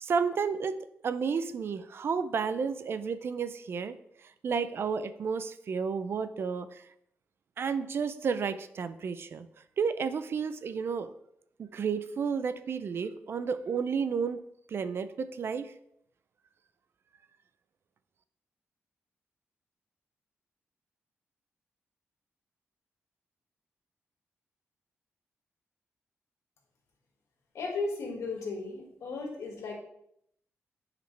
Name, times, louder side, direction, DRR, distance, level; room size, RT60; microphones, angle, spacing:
voice 1, 0.0-3.9 4.4-6.8 7.6-9.5 9.8-11.1 11.6-14.4 14.7-15.7, right 6 dB, 55° right, 12 dB, 0.5 m, -31 dB
voice 2, 27.5-29.7, left 3 dB, 90° left, 0 dB, 1.9 m, -35 dB
9.2 x 5.0 x 3.3 m, 0.72 s
wide cardioid pair, 140°, 5 cm